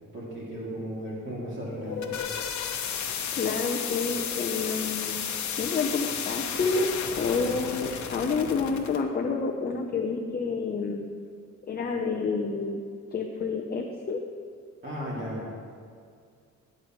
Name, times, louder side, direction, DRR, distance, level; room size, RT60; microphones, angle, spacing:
voice 1, 0.1-2.2 14.8-15.4, equal, 40° right, -7 dB, 2.7 m, -35 dB
sound 1, 1.7-9.0, left 7 dB, 65° left, 1.0 m, -33 dB
voice 2, 3.3-5.2 5.6-11.1 11.7-12.8 13.1-14.2, left 4 dB, 30° left, 2 dB, 0.7 m, -29 dB
17.0 x 9.8 x 3.1 m, 2.2 s
cardioid pair, 150°, 31 cm